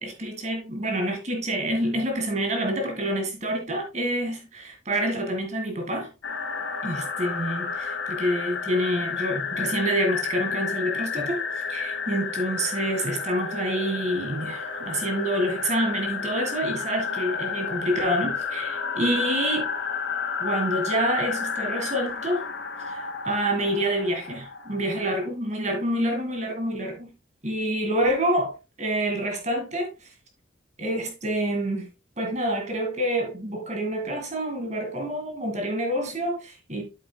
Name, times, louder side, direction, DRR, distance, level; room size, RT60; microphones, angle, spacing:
voice 1, 0.0-6.1 6.8-19.7 20.4-22.4 22.8-27.1 27.4-30.1 30.8-31.9 32.2-36.8, right 1 dB, 35° right, 2.1 m, -27 dB
sound 1, 6.2-25.3, left 6 dB, 90° left, 2.2 m, -31 dB
8.6 x 8.0 x 2.3 m
head